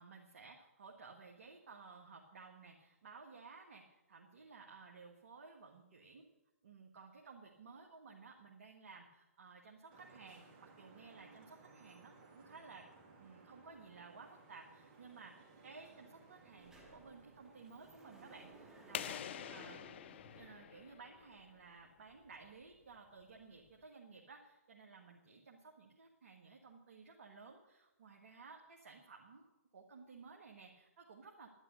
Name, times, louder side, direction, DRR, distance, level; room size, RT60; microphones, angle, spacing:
voice 1, 0.0-6.3 6.6-12.9 13.2-19.8 20.4-31.5, right 4 dB, 60° right, 1 dB, 1.9 m, -56 dB
Vehicle horn car horn honking / Traffic noise roadway noise, 9.9-19.9, right 3 dB, 35° right, 2.6 m, -62 dB
Sliding door, 15.8-16.0 16.3-21.3, right 1 dB, 5° right, 2.7 m, -61 dB
sound 1, 18.9-21.6, left 10 dB, 45° left, 0.5 m, -46 dB
11.0 x 10.5 x 6.6 m, 0.99 s
figure-of-eight pair, 130°, 8 cm